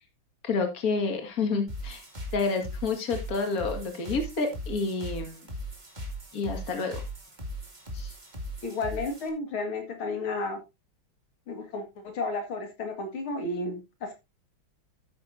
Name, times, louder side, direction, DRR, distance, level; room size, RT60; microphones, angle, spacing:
voice 1, 0.4-2.0 2.3-5.4 6.3-7.0 7.9-8.1, left 4 dB, 45° left, 5 dB, 2.4 m, -29 dB
sound 1, 1.7-9.3, equal, 20° right, 2.3 m, -39 dB
voice 2, 8.6-10.6 11.5-14.1, left 3 dB, 85° left, 5 dB, 2.9 m, -32 dB
12.0 x 9.4 x 2.7 m, 0.24 s
omnidirectional pair, 2.2 m